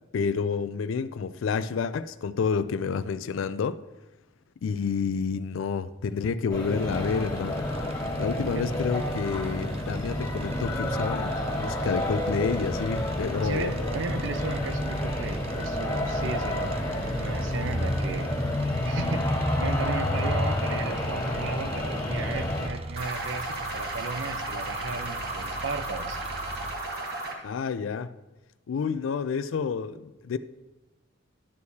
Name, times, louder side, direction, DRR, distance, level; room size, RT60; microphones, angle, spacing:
voice 1, 0.1-3.8 4.6-7.6 8.2-13.9 27.4-28.1 28.7-30.4, left 5 dB, 80° left, 0.4 m, -29 dB
sound 1, 6.5-22.7, left 1 dB, 20° left, 1.5 m, -29 dB
sound 2, 6.8-26.8, right 2 dB, 30° right, 0.4 m, -40 dB
voice 2, 13.4-18.4 18.6-26.2, right 4 dB, 70° right, 0.6 m, -35 dB
sound 3, 23.0-27.4, right 2 dB, 55° right, 1.3 m, -34 dB
11.0 x 6.5 x 2.8 m
head